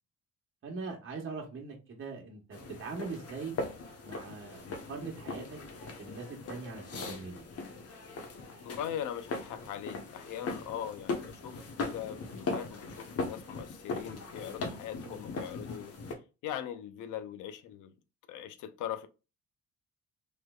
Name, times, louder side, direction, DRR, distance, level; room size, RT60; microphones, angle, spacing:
voice 1, 0.6-3.6 4.0-5.6 6.0-7.4 15.0-15.2, right 4 dB, 45° right, 1.0 m, -41 dB
sound 1, 2.5-16.1, left 3 dB, 55° left, 0.9 m, -40 dB
voice 2, 8.6-15.9 16.4-17.9 18.3-19.1, left 10 dB, 85° left, 0.5 m, -40 dB
3.2 x 3.0 x 2.3 m
cardioid pair, 90°, 30 cm